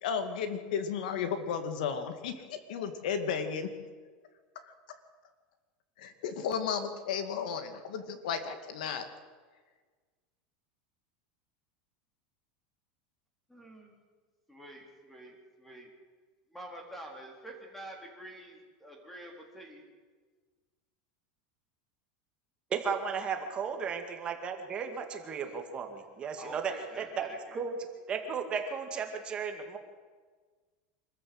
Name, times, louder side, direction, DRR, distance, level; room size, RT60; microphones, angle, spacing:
voice 1, 0.0-3.7 4.6-4.7 6.0-9.0, left 7 dB, 80° left, 8 dB, 2.5 m, -34 dB
voice 2, 13.5-14.0 14.5-15.9 16.5-19.9 26.4-27.6, right 1 dB, 5° left, 1 dB, 4.1 m, -48 dB
voice 3, 22.7-27.8 28.1-29.8, right 6 dB, 25° right, 4 dB, 2.1 m, -35 dB
25.5 x 14.0 x 8.0 m, 1.4 s
supercardioid pair, 155°, 4 cm